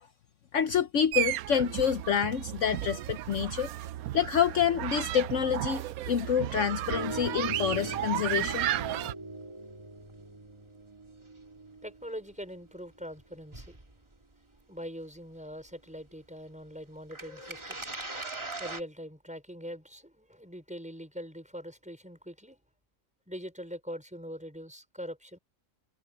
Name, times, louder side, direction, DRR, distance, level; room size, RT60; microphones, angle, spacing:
voice 1, 0.5-3.7 4.1-8.7, left 8 dB, 65° left, 1.1 m, -28 dB
sound 1, 1.1-9.1, right 14 dB, 85° right, 1.0 m, -34 dB
sound 2, 6.9-12.9 13.1-14.0 15.6-15.7 16.0-16.1 17.1-18.8, right 2 dB, 20° right, 1.8 m, -41 dB
voice 2, 11.8-13.8 14.7-17.8 18.6-22.6 23.3-25.4, equal, 5° right, 5.5 m, -42 dB
omnidirectional pair, 1.5 m